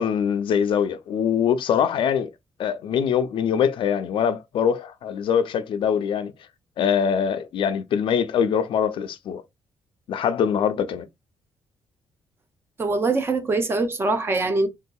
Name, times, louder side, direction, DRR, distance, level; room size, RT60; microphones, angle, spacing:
voice 1, 0.0-2.3 2.6-6.3 6.8-9.4 10.1-11.1, left 8 dB, 65° left, 0.4 m, -23 dB
voice 2, 12.8-14.7, right 3 dB, 25° right, 0.5 m, -23 dB
3.7 x 2.7 x 2.2 m
cardioid pair, 140°, 9 cm